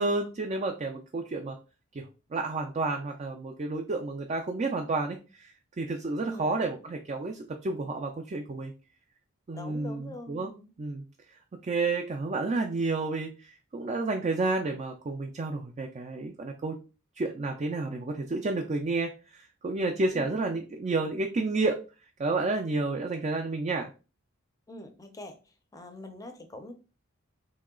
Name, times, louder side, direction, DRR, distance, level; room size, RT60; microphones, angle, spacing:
voice 1, 0.0-1.6 1.9-8.7 9.5-10.5 10.8-11.0 11.6-16.8 17.2-21.8 22.2-23.9, right 3 dB, 35° right, 3 dB, 0.4 m, -30 dB
voice 2, 6.2-6.5 9.5-10.7 20.1-20.3 24.7-25.4 25.7-26.7, left 1 dB, 15° left, 7 dB, 0.6 m, -44 dB
3.1 x 2.8 x 3.7 m, 0.32 s
head